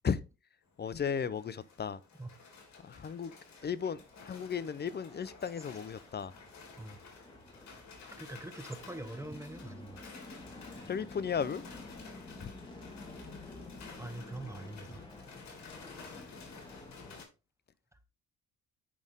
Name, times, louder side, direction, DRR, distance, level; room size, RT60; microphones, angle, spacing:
sound 1, 0.7-17.3, left 4 dB, 65° left, 2.9 m, -53 dB
voice 1, 0.8-2.0 2.8-3.3 3.6-6.3 10.9-11.6 12.4-12.5, left 7 dB, 35° left, 0.7 m, -35 dB
sound 2, 2.5-17.2, left 2 dB, 15° left, 1.9 m, -51 dB
voice 2, 8.2-10.1 10.8-10.9 14.0-15.0 16.1-16.2, right 2 dB, 10° right, 0.9 m, -44 dB
8.7 x 5.4 x 3.6 m
cardioid pair, 90°, 30 cm